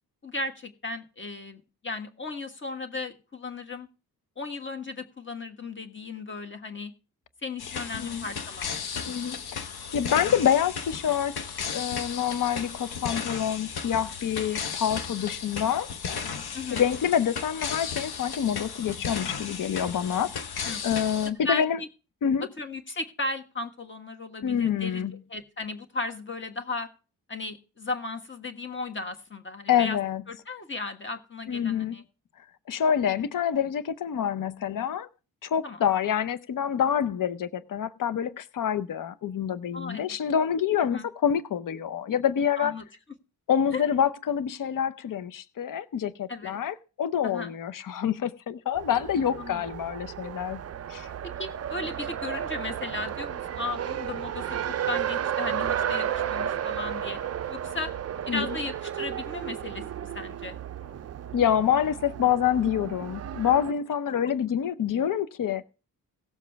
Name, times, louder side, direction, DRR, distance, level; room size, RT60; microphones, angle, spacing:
voice 1, 0.2-3.9 4.4-6.9 7.4-8.7 16.5-16.8 20.6-20.9 21.2-21.9 22.6-26.9 27.3-30.0 30.3-32.0 35.6-35.8 39.7-40.2 40.9-41.1 42.6-42.8 43.7-43.8 46.3-46.6 47.2-47.5 49.4-49.6 51.4-57.2 57.5-57.9 58.3-60.6, left 3 dB, 30° left, 1.5 m, -36 dB
sound 1, 7.6-21.3, left 6 dB, 80° left, 1.1 m, -35 dB
voice 2, 9.0-9.4 9.9-15.9 16.7-21.8 22.2-22.5 24.4-25.1 29.7-30.2 31.5-32.0 32.7-35.1 35.4-42.7 43.5-50.6 50.9-51.1 58.3-58.5 61.3-65.6, left 9 dB, 60° left, 0.7 m, -27 dB
Race car auto racing, 48.7-63.7, right 9 dB, 45° right, 0.4 m, -33 dB
17.5 x 7.2 x 3.4 m
wide cardioid pair, 140°, 37 cm